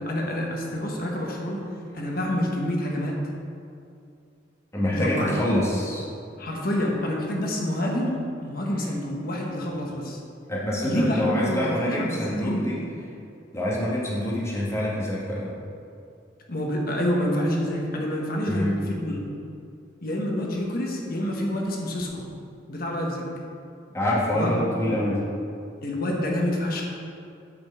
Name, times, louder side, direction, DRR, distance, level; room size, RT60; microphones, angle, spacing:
voice 1, 0.0-1.6 1.9-3.2 4.9-5.4 6.4-10.2 10.8-12.7 16.5-19.2 20.0-22.2 22.7-23.3 24.3-24.7 25.8-26.8, left 1 dB, 50° left, -1 dB, 1.5 m, -27 dB
voice 2, 4.7-6.0 10.5-12.8 13.5-15.5 18.5-18.8 23.9-25.2, left 1 dB, 15° left, -7 dB, 2.2 m, -26 dB
9.1 x 5.4 x 7.0 m, 2.6 s
head